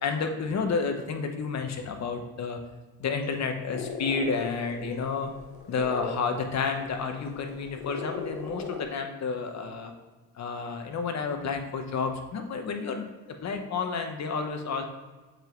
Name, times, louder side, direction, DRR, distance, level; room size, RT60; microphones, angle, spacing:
voice 1, 0.0-2.6 3.0-5.3 5.7-9.9 10.4-13.1 13.4-14.8, left 5 dB, 50° left, 5 dB, 1.1 m, -30 dB
sound 1, 3.7-8.8, left 5 dB, 85° left, 1.0 m, -38 dB
7.2 x 5.2 x 3.1 m, 1.3 s
cardioid pair, 105°, 35 cm